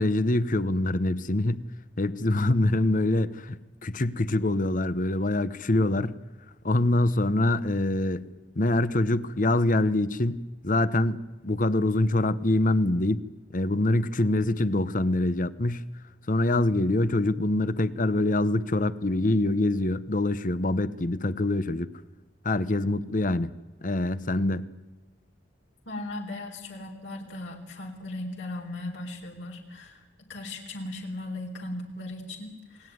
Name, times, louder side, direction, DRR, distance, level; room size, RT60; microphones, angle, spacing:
voice 1, 0.0-1.7 2.0-6.2 6.6-8.3 8.6-11.2 11.4-13.2 13.5-15.9 16.3-21.9 22.4-23.5 23.8-24.7, left 2 dB, 45° left, 15 dB, 1.0 m, -25 dB
voice 2, 25.9-30.0 30.3-32.9, left 2 dB, 75° left, 1 dB, 4.1 m, -37 dB
28.0 x 20.0 x 9.5 m, 1.1 s
head